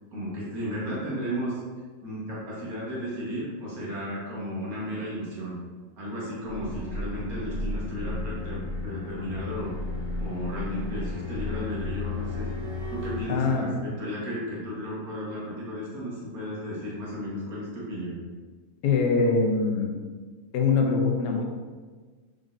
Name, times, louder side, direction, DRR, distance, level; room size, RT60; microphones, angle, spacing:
voice 1, 0.1-1.6 2.0-5.6 6.0-9.7 10.2-12.5 12.9-18.2, equal, 65° right, -6 dB, 1.7 m, -34 dB
sound 1, 6.4-13.2, left 3 dB, 40° right, 1.3 m, -33 dB
voice 2, 13.3-13.8 18.8-19.9 20.5-21.4, left 4 dB, 80° left, 2 dB, 1.2 m, -23 dB
5.0 x 3.8 x 2.5 m, 1.4 s
omnidirectional pair, 1.7 m